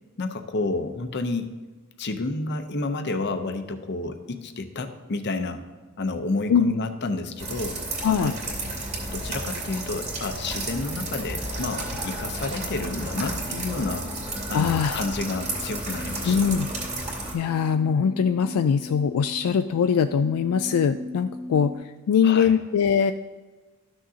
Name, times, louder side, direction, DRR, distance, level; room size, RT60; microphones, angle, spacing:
voice 1, 0.2-1.5 2.0-5.6 6.0-7.8 8.2-8.3 9.1-14.1 14.5-16.5 22.2-22.5, left 3 dB, 50° left, 7 dB, 0.7 m, -30 dB
sound 1, 7.4-17.3, right 2 dB, 30° right, 2.3 m, -32 dB
voice 2, 8.0-8.3 14.5-15.0 16.3-16.7 17.3-21.8 22.1-23.1, left 7 dB, 75° left, 8 dB, 0.3 m, -22 dB
sound 2, 13.4-21.7, left 1 dB, 45° right, 1.5 m, -41 dB
13.0 x 6.2 x 2.8 m, 1.3 s
head